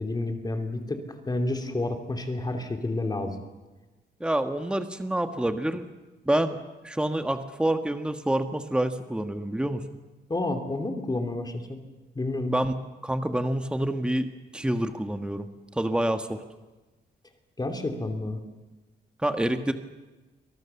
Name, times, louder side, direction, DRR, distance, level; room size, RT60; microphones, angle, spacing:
voice 1, 0.0-3.4 10.3-11.8 12.1-12.6 17.6-18.4, left 2 dB, 20° left, 5 dB, 3.0 m, -30 dB
voice 2, 4.2-5.8 6.2-9.8 12.5-12.7 13.0-14.3 14.5-15.5 15.7-16.4 19.2-19.7, right 1 dB, 5° right, 7 dB, 1.5 m, -27 dB
27.5 x 25.0 x 7.1 m, 1.2 s
wide cardioid pair, 135°, 19 cm